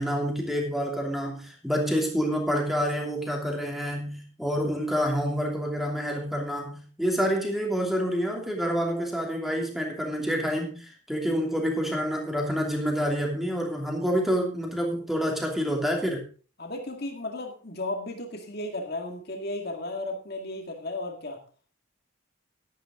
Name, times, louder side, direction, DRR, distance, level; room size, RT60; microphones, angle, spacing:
voice 1, 0.0-16.2, equal, ahead, 0 dB, 2.8 m, -28 dB
voice 2, 16.6-21.4, left 2 dB, 45° left, 3 dB, 2.1 m, -34 dB
12.0 x 12.0 x 3.8 m, 0.38 s
head